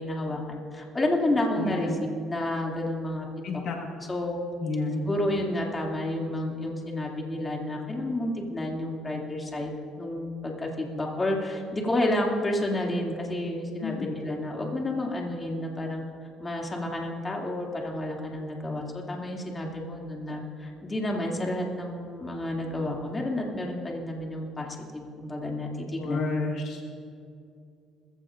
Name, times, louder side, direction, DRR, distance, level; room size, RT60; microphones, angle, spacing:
voice 1, 0.0-2.0 2.3-3.6 4.1-4.4 5.0-16.0 16.4-26.2, left 1 dB, 20° left, -1 dB, 2.7 m, -30 dB
voice 2, 1.6-2.0 3.4-3.8 4.6-5.0 13.8-14.1 26.0-26.8, left 3 dB, 60° left, 1 dB, 1.7 m, -30 dB
21.0 x 15.5 x 2.6 m, 2.4 s
cardioid pair, 100°, 0 cm